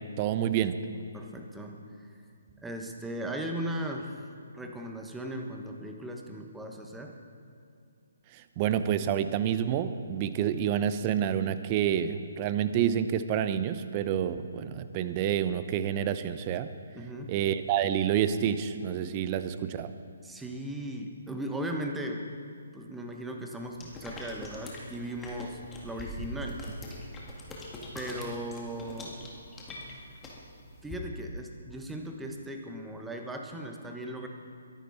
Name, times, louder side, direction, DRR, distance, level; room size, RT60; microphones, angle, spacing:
voice 1, 0.2-0.8 8.3-16.7 17.3-19.9, right 9 dB, 30° right, 12 dB, 0.7 m, -28 dB
voice 2, 1.1-2.1 2.6-4.1 4.5-7.2 16.9-17.3 20.2-22.3 22.7-26.6 27.9-29.2 30.8-34.3, right 1 dB, 5° right, 2 dB, 1.2 m, -37 dB
sound 1, 23.8-30.9, left 1 dB, 10° left, 2.2 m, -42 dB
22.5 x 11.5 x 4.2 m, 2.3 s
figure-of-eight pair, 135°, 0 cm